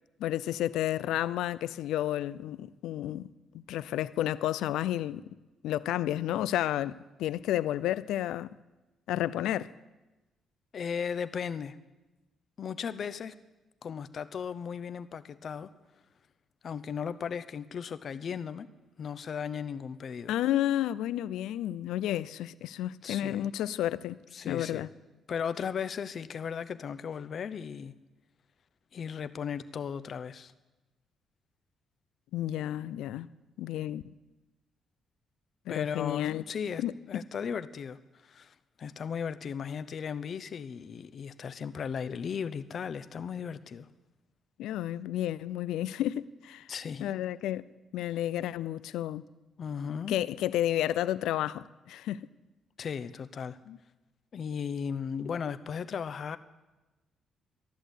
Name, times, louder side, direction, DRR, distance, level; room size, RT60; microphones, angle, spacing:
voice 1, 0.2-3.3 3.5-5.2 5.6-8.5 9.1-9.7 20.3-24.2 24.5-24.9 32.3-33.3 33.6-34.1 35.7-36.4 36.8-36.9 44.6-46.7 47.0-47.6 47.9-49.2 50.1-52.2 53.7-53.8, left 13 dB, 85° left, 0.4 m, -31 dB
voice 2, 10.7-11.8 12.6-13.4 13.8-15.7 16.6-18.7 19.0-20.3 23.0-23.5 24.3-24.9 25.3-27.9 28.9-30.5 35.7-43.9 46.7-47.1 49.6-50.2 52.8-53.6 54.3-56.4, left 7 dB, 55° left, 0.8 m, -36 dB
13.5 x 11.5 x 8.1 m
cardioid pair, 90°, 0 cm